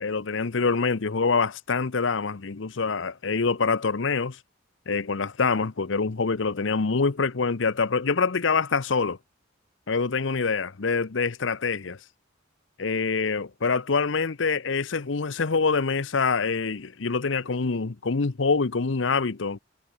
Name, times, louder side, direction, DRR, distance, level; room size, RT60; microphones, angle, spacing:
voice 1, 0.0-4.4 4.9-9.2 9.9-12.0 12.8-19.6, left 4 dB, 70° left, 0.8 m, -25 dB
head